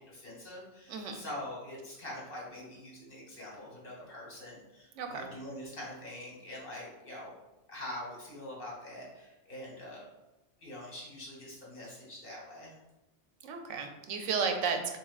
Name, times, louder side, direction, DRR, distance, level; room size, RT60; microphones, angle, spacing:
voice 1, 0.0-7.3 7.7-10.1 10.6-12.8, left 1 dB, 50° left, -4 dB, 1.4 m, -44 dB
voice 2, 0.9-1.2 5.0-5.3 13.4-15.0, right 5 dB, 80° right, 5 dB, 0.9 m, -33 dB
7.0 x 2.5 x 2.4 m, 1.0 s
omnidirectional pair, 1.3 m